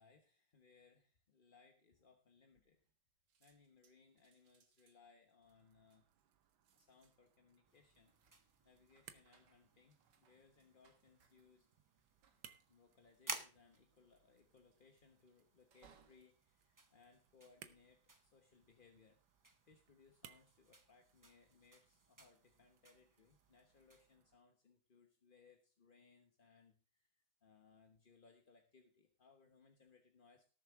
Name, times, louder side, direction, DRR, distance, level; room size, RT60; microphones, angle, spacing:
voice 1, 0.0-2.8 3.4-6.0 6.7-8.1 8.6-11.7 12.7-19.2 19.6-30.5, left 5 dB, 35° left, 4 dB, 1.0 m, -68 dB
sound 1, 2.5-3.0 3.3-17.8 18.4-18.8, right 6 dB, 65° right, 1.8 m, -75 dB
sound 2, 5.4-24.4, right 9 dB, 85° right, 1.7 m, -67 dB
sound 3, 7.6-24.2, right 2 dB, 30° right, 0.3 m, -57 dB
18.5 x 7.2 x 3.6 m, 0.36 s
omnidirectional pair, 2.1 m